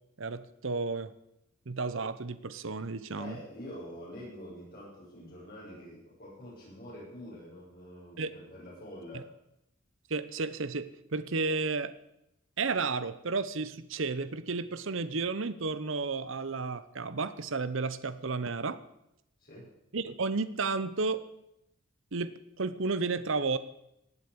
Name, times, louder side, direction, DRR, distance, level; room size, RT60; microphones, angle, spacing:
voice 1, 0.2-1.1 1.7-3.4 8.2-8.3 9.1-9.2 10.1-11.9 12.6-18.8 19.9-21.2 22.1-23.6, right 4 dB, 65° right, 14 dB, 0.9 m, -32 dB
voice 2, 3.2-9.3 19.4-19.7, equal, 45° left, -6 dB, 7.2 m, -46 dB
17.5 x 8.2 x 8.5 m, 0.84 s
head